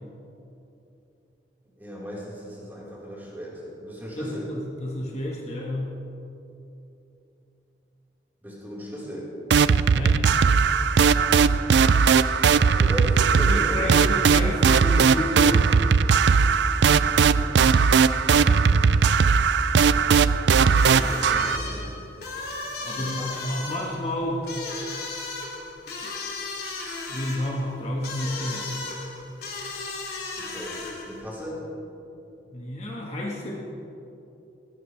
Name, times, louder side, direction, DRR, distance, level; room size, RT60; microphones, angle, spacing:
voice 1, 1.8-4.5 8.4-9.3 12.8-13.8 20.7-22.0 23.0-23.3 30.4-31.6, equal, 10° right, -7 dB, 4.2 m, -36 dB
voice 2, 4.1-5.9 9.9-10.3 13.4-15.7 22.8-24.5 27.1-28.7 32.5-33.6, left 1 dB, 40° left, -2 dB, 1.5 m, -30 dB
sound 1, 9.5-21.6, right 5 dB, 80° right, 0.4 m, -19 dB
sound 2, 20.7-31.2, left 3 dB, 60° left, 2.6 m, -35 dB
19.0 x 17.0 x 3.3 m, 2.9 s
head